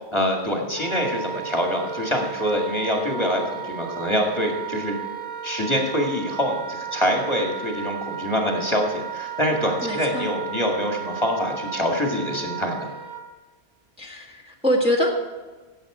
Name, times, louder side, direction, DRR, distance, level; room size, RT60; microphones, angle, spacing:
voice 1, 0.1-5.0 5.4-12.9, equal, 25° left, 0 dB, 2.0 m, -25 dB
Wind instrument woodwind instrument, 0.7-13.2, right 8 dB, 40° right, 2.3 m, -34 dB
voice 2, 9.8-10.3 14.0-15.1, equal, 5° right, -2 dB, 1.7 m, -24 dB
16.5 x 8.1 x 5.0 m, 1.3 s
omnidirectional pair, 1.1 m